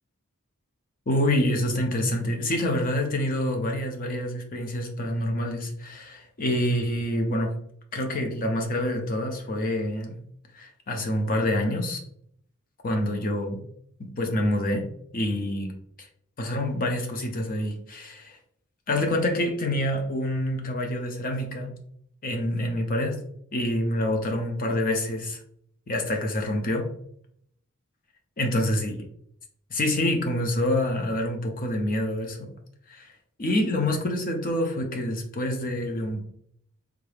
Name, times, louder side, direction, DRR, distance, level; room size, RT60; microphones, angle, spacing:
voice 1, 1.1-7.6 7.9-10.2 10.5-12.0 12.8-13.6 14.0-14.9 15.1-16.1 16.4-18.4 18.9-21.7 22.2-23.2 23.5-25.4 25.9-26.9 28.4-28.9 29.7-32.5 32.9-33.1 33.4-36.2, left 1 dB, 40° left, 3 dB, 0.6 m, -27 dB
3.6 x 2.3 x 3.3 m, 0.68 s
head